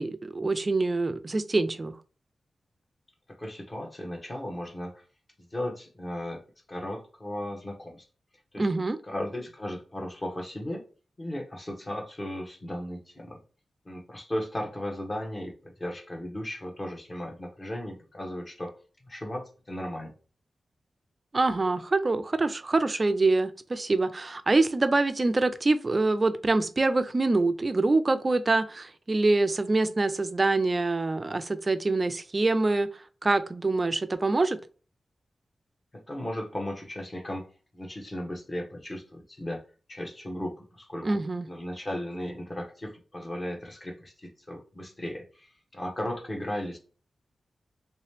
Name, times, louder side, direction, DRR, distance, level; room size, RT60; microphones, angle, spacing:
voice 1, 0.0-1.9 8.6-9.0 21.3-32.9 33.2-34.6 41.0-41.5, right 3 dB, 25° right, 11 dB, 0.3 m, -25 dB
voice 2, 3.4-5.0 5.5-6.4 6.7-8.1 8.5-8.7 9.0-10.8 11.2-13.4 13.8-15.5 15.8-18.7 19.0-20.1 36.1-37.5 37.7-39.6 39.9-41.2 41.5-46.8, left 1 dB, 25° left, 2 dB, 0.9 m, -36 dB
3.2 x 2.9 x 3.2 m, 0.37 s
wide cardioid pair, 155°, 0 cm